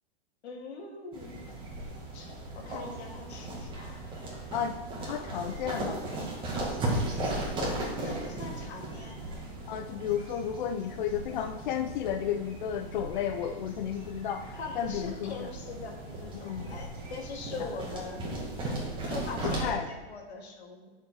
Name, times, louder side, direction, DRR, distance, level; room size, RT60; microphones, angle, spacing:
voice 1, 0.4-1.5 2.1-4.1 4.9-5.1 7.4-9.5 14.6-18.3 19.1-20.9, left 3 dB, 85° left, 1 dB, 2.4 m, -42 dB
sound 1, 1.1-19.7, right 2 dB, 15° right, 1.9 m, -37 dB
voice 2, 4.5-6.0 9.7-15.5 16.3-16.7 19.4-19.9, left 9 dB, 50° left, 7 dB, 0.5 m, -33 dB
9.4 x 6.6 x 4.8 m, 1.3 s
hypercardioid pair, 155°, 32 cm